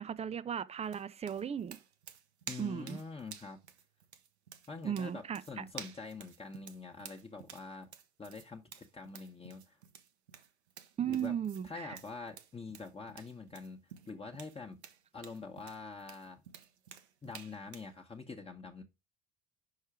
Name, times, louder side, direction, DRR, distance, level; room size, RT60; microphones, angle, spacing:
voice 1, 0.0-1.8 2.6-3.0 4.8-5.6 11.0-12.0, right 8 dB, 20° right, 0.5 m, -36 dB
sound 1, 0.8-17.9, right 8 dB, 80° right, 0.8 m, -52 dB
voice 2, 2.5-3.6 4.7-7.9 8.2-9.8 11.1-11.3 11.6-14.8 15.1-16.4 17.2-18.8, left 4 dB, 20° left, 1.1 m, -45 dB
5.5 x 4.8 x 4.8 m
figure-of-eight pair, 65°, 32 cm